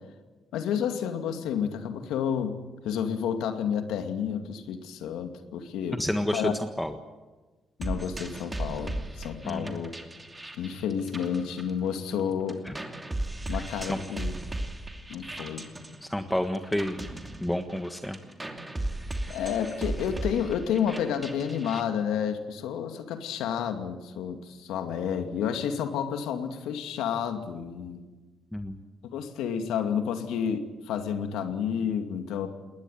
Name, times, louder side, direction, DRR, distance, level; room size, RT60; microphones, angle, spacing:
voice 1, 0.5-2.6 2.8-6.0 6.3-6.5 7.8-9.9 10.6-12.6 13.5-14.3 15.1-15.7 19.3-28.0 29.1-32.5, left 8 dB, 90° left, 7 dB, 2.4 m, -30 dB
voice 2, 6.0-6.9 9.4-9.8 12.6-12.7 13.8-14.0 16.0-17.0 17.4-18.2 28.5-28.8, left 1 dB, 5° left, 7 dB, 1.5 m, -30 dB
sound 1, 7.8-12.2 12.5-21.8, right 1 dB, 15° right, 2.8 m, -36 dB
20.5 x 19.5 x 9.4 m, 1.2 s
cardioid pair, 90°, 0 cm